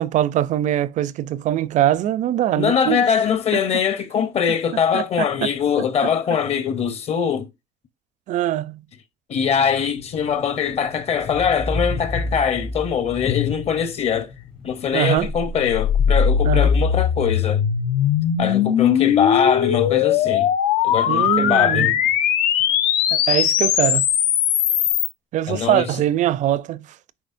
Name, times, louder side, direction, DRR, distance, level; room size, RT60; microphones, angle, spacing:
voice 1, 0.0-3.0 4.9-5.0 5.4-5.5 8.3-8.8 14.9-15.3 16.4-16.7 21.1-21.9 23.1-24.0 25.3-26.8, right 12 dB, 50° right, 0.5 m, -22 dB
voice 2, 2.6-7.5 9.3-14.3 14.6-17.6 18.4-20.5 20.8-22.0 25.5-26.0, left 7 dB, 40° left, 0.8 m, -22 dB
sound 1, 9.5-18.4, left 10 dB, 75° left, 2.6 m, -36 dB
sound 2, 11.3-14.2, equal, 5° left, 0.3 m, -30 dB
sound 3, 15.2-25.1, left 9 dB, 90° left, 1.0 m, -19 dB
9.4 x 4.0 x 2.6 m
cardioid pair, 145°, 16 cm